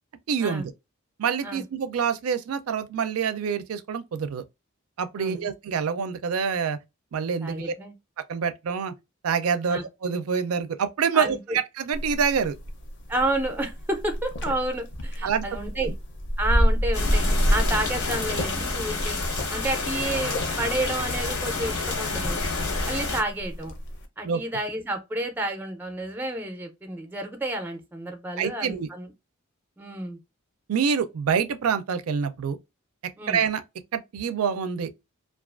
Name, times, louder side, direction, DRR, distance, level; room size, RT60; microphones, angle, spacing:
voice 1, 0.3-0.7 1.2-4.4 5.0-6.8 7.1-7.7 8.3-8.9 9.2-12.6 15.2-15.5 15.8-15.9 24.2-24.4 28.4-28.9 30.7-32.6 33.3-33.6 33.9-34.9, right 6 dB, 80° right, 0.4 m, -26 dB
voice 2, 5.2-5.5 7.4-7.9 9.7-9.8 11.1-11.6 13.1-15.9 16.4-17.3 17.5-19.2 19.5-22.4 22.8-23.7 24.2-29.1 29.8-30.2 33.2-33.4, right 1 dB, 10° right, 0.4 m, -30 dB
sound 1, 11.9-24.1, equal, 55° left, 0.6 m, -29 dB
sound 2, 16.9-23.2, left 3 dB, 80° left, 0.9 m, -29 dB
2.4 x 2.3 x 2.3 m
head